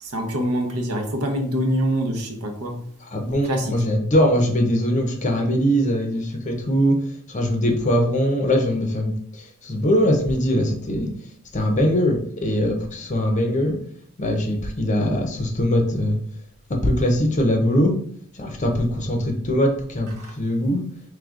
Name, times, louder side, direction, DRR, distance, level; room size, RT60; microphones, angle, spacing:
voice 1, 0.0-2.8 3.4-3.7 20.2-20.3, equal, 70° right, 3 dB, 0.8 m, -25 dB
voice 2, 3.1-7.0 7.3-11.1 11.5-13.8 14.2-16.2 16.7-17.9 18.3-20.8, equal, 35° left, 3 dB, 0.6 m, -21 dB
4.9 x 3.3 x 2.4 m, 0.62 s
head